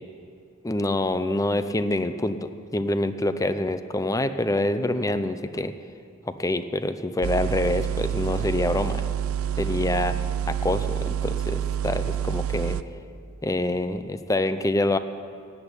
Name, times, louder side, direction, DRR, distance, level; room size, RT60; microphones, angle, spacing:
voice 1, 0.6-5.7 6.3-9.0 9.6-10.1 10.5-12.8 13.4-15.0, left 1 dB, 15° left, 11 dB, 0.5 m, -26 dB
sound 1, 7.2-12.8, right 9 dB, 80° right, 0.4 m, -27 dB
15.5 x 8.3 x 9.7 m, 2.4 s
head